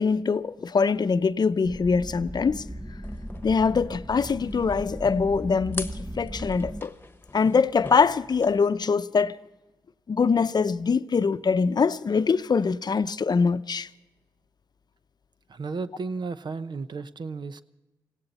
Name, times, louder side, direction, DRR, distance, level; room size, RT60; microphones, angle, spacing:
voice 1, 0.0-2.6 3.4-6.9 7.3-9.4 10.1-13.9, left 5 dB, 55° left, 0.7 m, -23 dB
sound 1, 1.6-6.8, equal, 5° right, 0.8 m, -37 dB
sound 2, 3.0-8.6, left 2 dB, 25° left, 1.3 m, -43 dB
voice 2, 15.5-17.6, right 4 dB, 60° right, 0.8 m, -33 dB
20.0 x 16.5 x 4.2 m
supercardioid pair, 45°, 9 cm